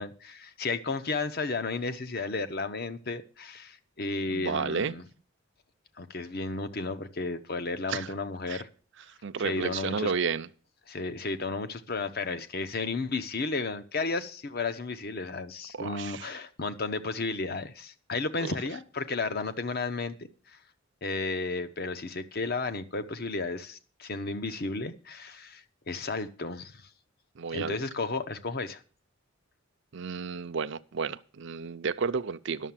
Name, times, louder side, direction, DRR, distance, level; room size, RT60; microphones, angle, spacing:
voice 1, 0.0-5.0 6.0-8.7 9.4-10.1 10.9-20.2 21.0-26.9 27.5-28.8, left 3 dB, 50° left, 0.8 m, -33 dB
voice 2, 4.3-4.9 7.9-8.1 8.5-8.6 9.2-10.5 15.7-16.3 18.5-18.6 27.4-27.8 29.9-32.7, right 5 dB, 60° right, 0.5 m, -32 dB
11.0 x 6.9 x 7.3 m
head